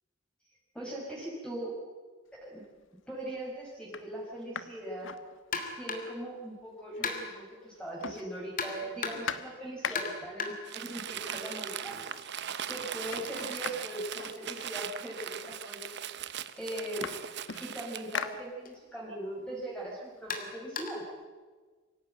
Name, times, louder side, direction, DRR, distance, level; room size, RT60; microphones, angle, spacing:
voice 1, 0.7-1.8 2.4-2.6 3.1-5.1 5.8-12.1 12.7-15.9 16.6-17.1 17.6-21.1, right 1 dB, 5° left, -4 dB, 5.3 m, -40 dB
sound 1, 2.4-2.9 3.4-3.5 3.8-5.9 6.2-6.3 6.5-7.4 7.7-10.4 11.3-11.4 11.8-12.3 12.6-15.0 15.8-15.9 16.2-19.0 19.4-21.1, left 6 dB, 70° left, 1.3 m, -42 dB
sound 2, 5.5-6.2 7.0-7.5 8.6-9.4 9.9-11.7 12.0-15.9 17.0-17.2 17.6-17.7 18.7-18.8 20.3-21.1, left 4 dB, 45° left, 2.9 m, -39 dB
Crumpling crinkling, 10.6-18.2, right 9 dB, 60° right, 1.0 m, -39 dB
24.5 x 16.5 x 9.1 m, 1.4 s
head